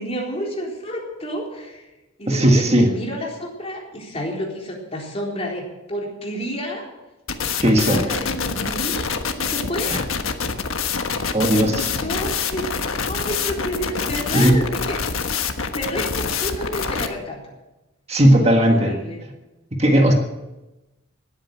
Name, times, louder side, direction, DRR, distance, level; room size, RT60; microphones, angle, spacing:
voice 1, 0.0-1.9 2.2-6.9 7.6-9.1 9.4-10.0 11.7-12.7 13.1-15.3 15.7-17.4 18.4-19.2, equal, 30° left, -1 dB, 4.0 m, -30 dB
voice 2, 2.3-2.9 7.6-8.0 9.8-10.0 11.3-11.9 14.3-14.6 18.1-18.9 19.8-20.1, right 1 dB, 30° right, 3 dB, 1.6 m, -16 dB
sound 1, 7.3-17.1, left 6 dB, 90° left, 1.3 m, -26 dB
18.5 x 9.0 x 8.3 m, 1.0 s
head